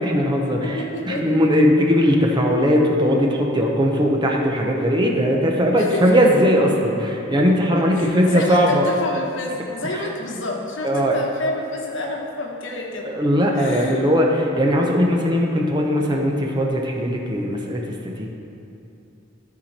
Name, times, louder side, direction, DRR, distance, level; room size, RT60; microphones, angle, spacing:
voice 1, 0.0-8.9 9.9-10.0 10.8-11.2 13.0-14.3 14.5-18.3, equal, 20° right, 0 dB, 0.7 m, -19 dB
voice 2, 0.7-1.4 5.8-6.0 7.7-13.1 13.5-14.0, left 2 dB, 65° left, 0 dB, 1.1 m, -29 dB
13.0 x 4.4 x 4.2 m, 2.8 s
head